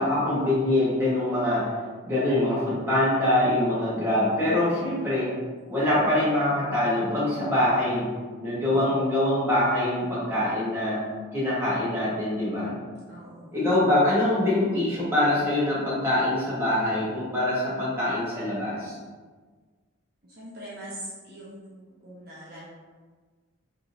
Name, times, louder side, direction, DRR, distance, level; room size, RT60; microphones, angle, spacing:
voice 1, 0.0-1.7 2.0-5.3 5.7-8.1 8.4-11.0 11.3-12.7 13.5-19.0, left 1 dB, 10° right, -10 dB, 1.1 m, -24 dB
voice 2, 3.7-4.1 8.7-9.0 13.1-13.5 20.2-22.7, right 1 dB, 45° right, -8 dB, 0.7 m, -43 dB
3.5 x 2.8 x 2.5 m, 1.4 s
head